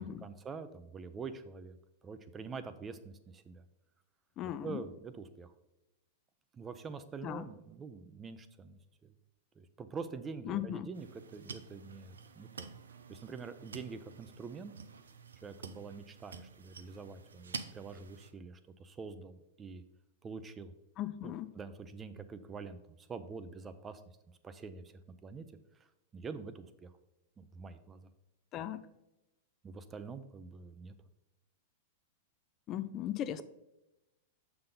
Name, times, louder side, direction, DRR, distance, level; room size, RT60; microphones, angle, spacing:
voice 1, 0.0-1.8 2.0-3.6 4.4-5.5 6.5-8.7 9.6-12.7 13.1-14.7 15.4-19.8 20.2-20.7 21.2-24.0 24.4-25.5 25.8-25.9 26.1-26.9 27.4-28.1 29.6-30.9, right 5 dB, 20° right, 11 dB, 0.6 m, -45 dB
voice 2, 4.4-4.8 7.2-7.4 10.5-10.9 21.0-21.5 28.5-28.9 32.7-33.4, left 11 dB, 35° left, 12 dB, 0.4 m, -37 dB
sound 1, 10.9-18.3, right 5 dB, 90° right, 0.5 m, -49 dB
6.6 x 5.8 x 3.8 m, 0.95 s
hypercardioid pair, 115°, 0 cm